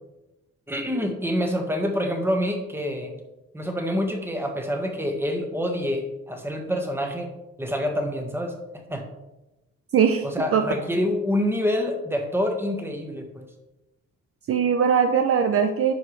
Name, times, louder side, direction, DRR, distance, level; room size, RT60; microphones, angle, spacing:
voice 1, 0.7-3.1 3.5-7.3 7.6-8.5 8.9-9.0 10.2-13.5, equal, 10° right, 3 dB, 1.4 m, -26 dB
voice 2, 9.9-10.3 10.5-10.6 14.5-15.9, right 7 dB, 50° right, 6 dB, 0.6 m, -20 dB
10.5 x 4.8 x 3.2 m, 0.98 s
cardioid pair, 90°, 30 cm